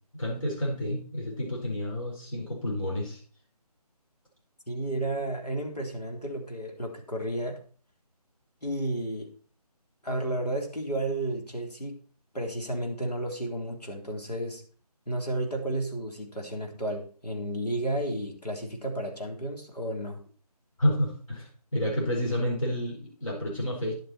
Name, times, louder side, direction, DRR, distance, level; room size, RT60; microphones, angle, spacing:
voice 1, 0.1-3.2 20.8-23.9, equal, 55° left, -3 dB, 4.8 m, -30 dB
voice 2, 4.7-7.6 8.6-9.3 10.0-12.0 12.3-14.6 15.1-20.2, right 1 dB, 80° left, 2 dB, 3.5 m, -32 dB
11.0 x 7.9 x 4.4 m, 0.41 s
figure-of-eight pair, 155°, 20 cm